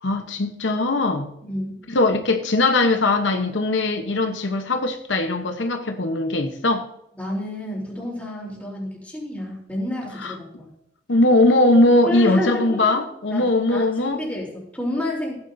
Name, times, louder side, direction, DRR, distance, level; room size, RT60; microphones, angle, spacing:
voice 1, 0.0-1.3 1.9-6.8 10.2-10.3 11.1-14.2, left 2 dB, 80° left, 1.0 m, -20 dB
voice 2, 1.4-1.8 7.2-10.7 12.0-13.0 13.3-15.4, left 1 dB, 10° left, 3.4 m, -30 dB
15.5 x 10.0 x 2.7 m
head